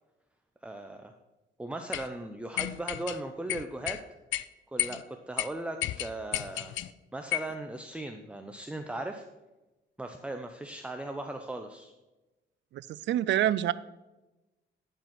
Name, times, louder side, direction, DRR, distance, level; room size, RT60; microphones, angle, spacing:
voice 1, 0.6-1.1 1.6-4.0 4.7-6.8 7.1-9.2 10.0-11.9, right 1 dB, 5° right, 5 dB, 0.6 m, -38 dB
sound 1, 1.9-2.1 2.6-3.2 3.5-4.0 4.3-4.4 4.8-5.0 5.4-5.5 5.8-6.9 7.3-7.5, left 14 dB, 75° left, 0.4 m, -32 dB
voice 2, 12.7-13.7, right 12 dB, 65° right, 17 dB, 0.4 m, -27 dB
10.5 x 4.4 x 6.0 m, 1.1 s
cardioid pair, 90°, 20 cm